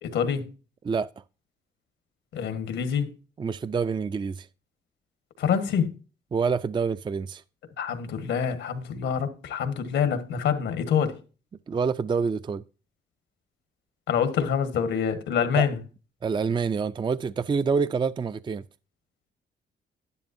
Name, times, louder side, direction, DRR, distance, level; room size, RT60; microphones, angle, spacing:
voice 1, 0.0-0.5 2.3-3.1 5.4-5.9 7.8-11.2 14.1-15.8, left 7 dB, 85° left, 1.4 m, -26 dB
voice 2, 3.4-4.5 6.3-7.4 11.7-12.6 15.6-15.7 16.2-18.6, right 5 dB, 25° right, 0.4 m, -27 dB
11.0 x 10.5 x 2.7 m
cardioid pair, 80°, 19 cm